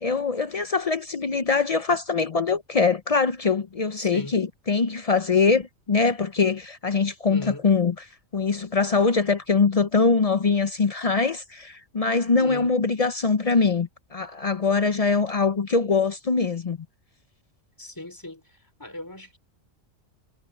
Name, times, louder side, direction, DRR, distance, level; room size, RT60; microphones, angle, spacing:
voice 1, 0.0-8.1 8.3-16.8, left 4 dB, 50° left, 0.4 m, -23 dB
voice 2, 4.0-4.4 7.3-7.6 12.3-12.7 17.8-18.4 18.8-19.4, left 1 dB, 15° left, 4.2 m, -38 dB
omnidirectional pair, 1.4 m